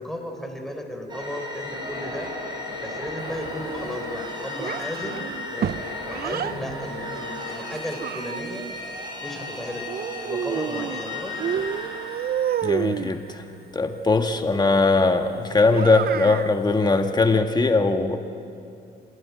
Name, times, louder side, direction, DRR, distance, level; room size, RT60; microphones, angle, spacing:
voice 1, 0.0-2.3 2.8-5.2 5.5-5.7 6.0-8.6 9.2-9.9 10.2-11.7, equal, ahead, 3 dB, 4.0 m, -34 dB
sound 1, 1.1-13.6, left 2 dB, 20° right, 6.4 m, -35 dB
Child speech kid speaking, 4.6-6.6 7.5-8.7 9.9-11.0 11.4-13.1 15.7-16.5, right 9 dB, 50° right, 0.6 m, -29 dB
voice 2, 12.6-13.4 13.7-18.2, left 3 dB, 20° left, 5 dB, 1.6 m, -20 dB
26.5 x 20.0 x 9.6 m, 2.7 s
cardioid pair, 90°, 20 cm